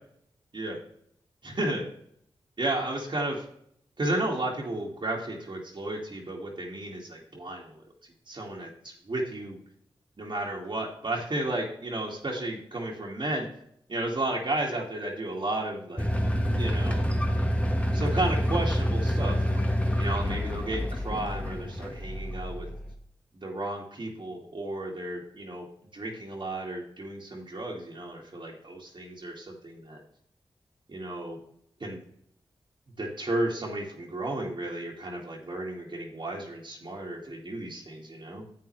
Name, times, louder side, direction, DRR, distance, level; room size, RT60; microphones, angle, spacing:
voice 1, 1.4-1.9 2.6-3.5 4.0-7.8 8.3-8.7 9.1-9.6 10.2-13.5 13.9-16.1 16.5-17.0 17.9-19.6 20.0-22.7 23.4-25.7 25.9-30.0 30.9-31.4 31.8-32.0 33.0-38.4, right 1 dB, 50° right, -2 dB, 2.1 m, -33 dB
sound 1, 16.0-22.9, equal, 10° left, 1.4 m, -27 dB
10.5 x 7.8 x 3.3 m, 0.69 s
cardioid pair, 40°, 10 cm